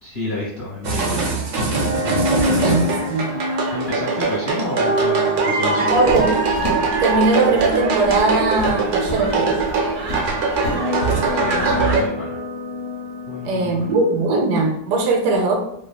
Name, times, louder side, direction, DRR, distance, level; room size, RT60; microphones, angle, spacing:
voice 1, 0.0-1.3 2.0-2.2 2.5-2.8 3.7-6.1 11.3-12.4 13.3-13.9, left 1 dB, 40° left, -8 dB, 1.0 m, -29 dB
sound 1, 0.8-12.0, right 4 dB, 60° right, 0.8 m, -22 dB
sound 2, 1.6-14.5, equal, 15° right, 0.3 m, -28 dB
voice 2, 2.3-3.3 5.8-6.4 7.0-9.6 13.4-15.6, right 3 dB, 85° right, 2 dB, 1.2 m, -20 dB
sound 3, 5.9-12.1, equal, 70° left, 0.6 m, -31 dB
3.2 x 2.3 x 2.2 m, 0.75 s
omnidirectional pair, 1.8 m